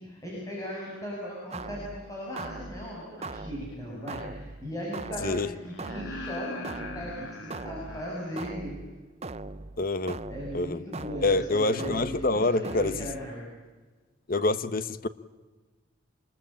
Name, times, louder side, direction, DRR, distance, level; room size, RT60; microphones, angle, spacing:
voice 1, 0.0-5.3 5.6-8.7 10.3-13.5, equal, 15° left, -4 dB, 6.9 m, -38 dB
sound 1, 1.5-13.5, right 3 dB, 30° right, 0.7 m, -41 dB
sound 2, 3.7-3.8 5.6-8.5 10.5-10.6, left 2 dB, 75° left, 2.9 m, -41 dB
voice 2, 9.8-10.2 10.5-10.8 11.2-12.9 14.3-15.1, left 2 dB, 45° left, 13 dB, 1.1 m, -26 dB
26.0 x 21.0 x 8.9 m, 1.3 s
head